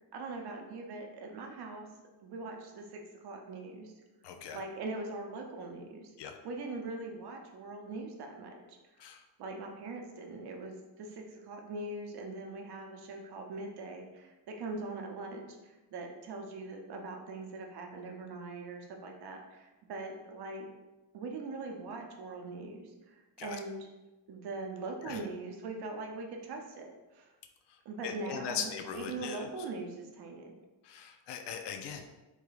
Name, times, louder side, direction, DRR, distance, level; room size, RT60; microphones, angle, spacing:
voice 1, 0.1-1.9 2.2-3.9 4.5-6.1 6.4-8.8 9.4-20.7 21.1-23.9 24.3-27.3 27.8-30.6, right 3 dB, 60° right, 2 dB, 0.7 m, -42 dB
voice 2, 4.2-4.6 6.2-6.3 9.0-9.2 23.4-23.6 25.0-25.2 27.7-27.8 28.0-29.5 30.8-32.1, left 7 dB, 70° left, 5 dB, 0.5 m, -40 dB
3.3 x 3.0 x 2.3 m, 1.1 s
cardioid pair, 90°, 43 cm